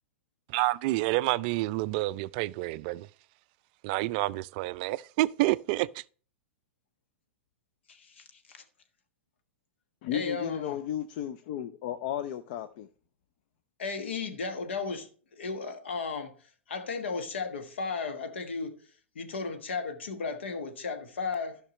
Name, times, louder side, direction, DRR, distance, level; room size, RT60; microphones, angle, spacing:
voice 1, 0.5-3.1 3.8-6.0, right 18 dB, 45° right, 0.3 m, -28 dB
voice 2, 7.9-8.6 10.1-10.8 13.8-15.1 15.4-16.3 16.7-18.8 19.1-21.6, left 4 dB, 70° left, 1.4 m, -35 dB
voice 3, 10.0-12.9, left 10 dB, 50° left, 0.6 m, -34 dB
14.5 x 5.8 x 3.1 m
figure-of-eight pair, 90°, 6 cm